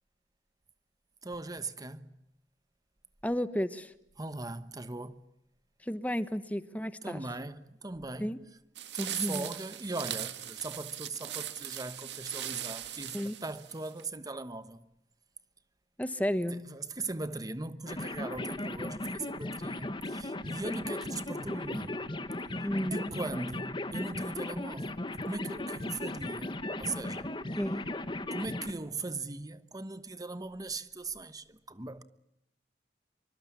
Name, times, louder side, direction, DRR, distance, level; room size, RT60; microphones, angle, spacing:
voice 1, 1.2-2.1 4.2-5.2 7.0-8.4 8.9-14.9 16.7-22.0 22.5-26.5 26.8-27.3 28.3-32.0, right 3 dB, 20° right, 1.1 m, -39 dB
voice 2, 3.2-3.9 5.8-7.2 8.2-8.4 9.0-9.5 13.1-13.3 16.0-16.6 22.6-23.1 27.6-27.8, equal, 10° left, 1.1 m, -32 dB
sound 1, 8.8-14.0, right 11 dB, 75° right, 1.9 m, -40 dB
sound 2, 17.9-28.7, left 1 dB, 25° left, 1.4 m, -37 dB
25.5 x 25.0 x 8.5 m
head